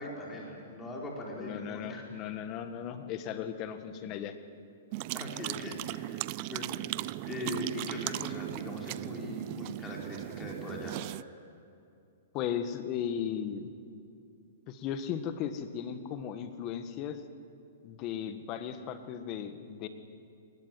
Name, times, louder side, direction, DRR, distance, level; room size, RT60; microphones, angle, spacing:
voice 1, 0.0-2.0 5.1-6.8 7.2-11.0, left 2 dB, 15° left, -1 dB, 4.8 m, -40 dB
voice 2, 1.4-4.3 12.3-13.7 14.7-17.2 17.8-19.9, left 9 dB, 35° left, 9 dB, 1.6 m, -36 dB
sound 1, 4.9-11.2, right 19 dB, 40° right, 0.5 m, -37 dB
22.0 x 19.5 x 9.3 m, 2.5 s
hypercardioid pair, 140°, 0 cm